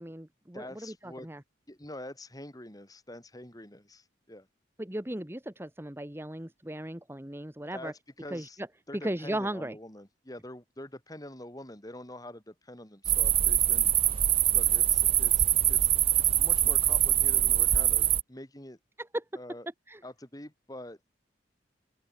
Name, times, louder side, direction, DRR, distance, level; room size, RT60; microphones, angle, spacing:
voice 1, 0.0-1.4 4.8-7.9 8.3-8.5 9.0-9.8 19.0-19.2 19.9-20.0, right 1 dB, 15° right, 1.3 m, -36 dB
voice 2, 0.5-1.3 1.7-4.5 7.7-8.6 8.9-13.9 14.5-15.9 16.2-18.8 19.3-19.7 20.0-21.0, left 1 dB, 20° left, 3.8 m, -45 dB
sound 1, 13.0-18.2, right 11 dB, 30° right, 0.5 m, -24 dB
open air
head